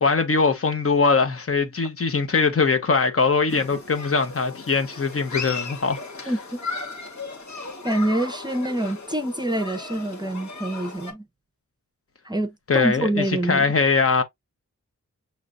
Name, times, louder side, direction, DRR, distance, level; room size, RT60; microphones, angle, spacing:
voice 1, 0.0-6.3 12.7-14.2, left 4 dB, 45° left, 0.9 m, -22 dB
Human group actions, 3.5-11.1, left 4 dB, 65° left, 1.6 m, -36 dB
voice 2, 6.3-6.6 7.8-11.3 12.2-13.7, right 1 dB, 15° right, 0.7 m, -26 dB
6.4 x 3.1 x 2.4 m
wide cardioid pair, 100°, 31 cm